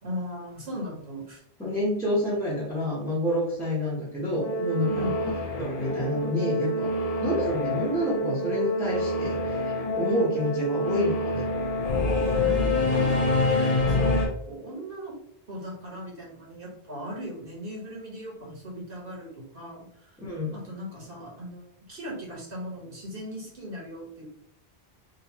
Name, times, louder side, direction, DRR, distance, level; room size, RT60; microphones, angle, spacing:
voice 1, 0.0-1.4 4.9-5.1 12.4-15.2 15.5-20.2 20.5-24.2, equal, 60° right, -4 dB, 1.5 m, -38 dB
voice 2, 1.6-5.1 5.6-6.9 7.2-11.4 20.2-20.5, left 1 dB, 5° left, -7 dB, 1.1 m, -28 dB
Singing / Musical instrument, 4.4-14.3, left 1 dB, 40° left, 0.8 m, -26 dB
3.9 x 2.6 x 2.9 m, 0.74 s
omnidirectional pair, 1.0 m